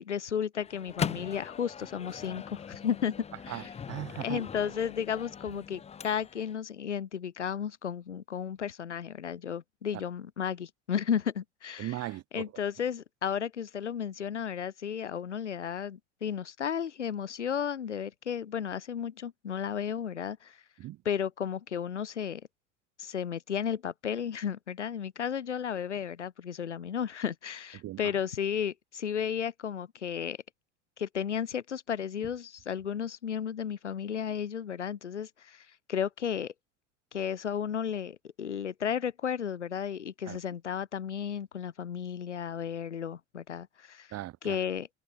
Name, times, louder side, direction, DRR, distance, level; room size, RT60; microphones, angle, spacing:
voice 1, 0.0-3.1 3.5-3.7 4.2-12.0 12.3-20.6 21.0-22.4 23.0-30.4 31.0-36.5 37.1-44.1 44.4-44.9, left 8 dB, 85° left, 1.0 m, -33 dB
Microwave oven, 0.5-6.6, left 7 dB, 20° left, 0.8 m, -40 dB
voice 2, 3.5-4.4 11.8-12.5 20.8-21.0 27.7-28.0 40.3-40.4 44.1-44.6, right 15 dB, 45° right, 3.7 m, -38 dB
figure-of-eight pair, 75°, 34 cm